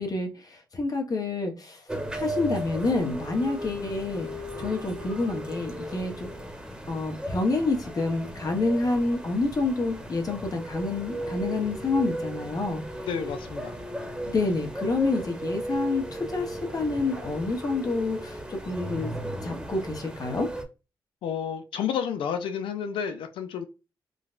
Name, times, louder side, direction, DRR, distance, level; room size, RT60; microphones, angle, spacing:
voice 1, 0.0-1.9 2.1-6.3 6.9-12.8 14.3-19.1 19.4-20.5, left 3 dB, 45° left, 1.0 m, -28 dB
sound 1, 1.9-20.6, right 1 dB, 10° right, 1.0 m, -36 dB
voice 2, 13.0-13.7 21.2-23.6, left 7 dB, 90° left, 0.4 m, -30 dB
3.8 x 2.2 x 2.5 m
cardioid pair, 65°, 8 cm